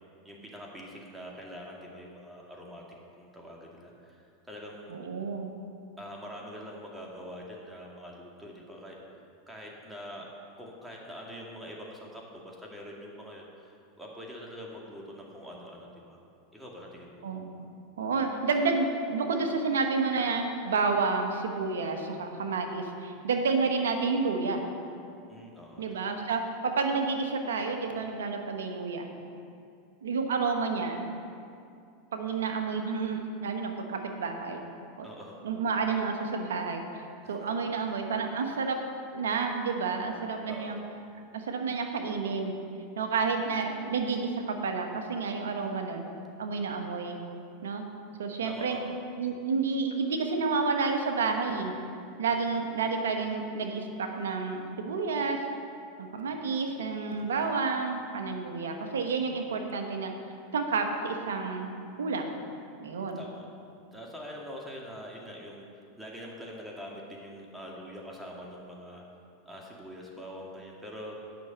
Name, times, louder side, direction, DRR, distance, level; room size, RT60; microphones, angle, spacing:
voice 1, 0.2-2.8 3.2-4.9 6.0-9.0 9.5-10.3 10.6-16.2 16.5-17.2 25.3-26.1 35.0-35.4 37.2-37.5 40.4-40.8 48.4-48.9 57.1-57.5 63.2-63.5 63.9-65.7 66.0-69.0 69.5-71.2, equal, 5° right, -2 dB, 2.1 m, -44 dB
voice 2, 4.9-5.5 17.2-17.5 18.0-24.6 25.8-29.1 30.0-31.1 32.1-34.6 35.0-35.1 35.4-36.8 37.3-38.8 39.1-40.8 41.3-42.5 43.0-46.1 46.4-47.2 47.6-47.8 48.2-48.8 49.2-51.7 52.2-55.4 56.0-60.1 60.5-62.3 62.8-63.2, right 4 dB, 85° right, 4 dB, 1.1 m, -30 dB
8.4 x 6.2 x 8.0 m, 2.5 s
hypercardioid pair, 100°, 0 cm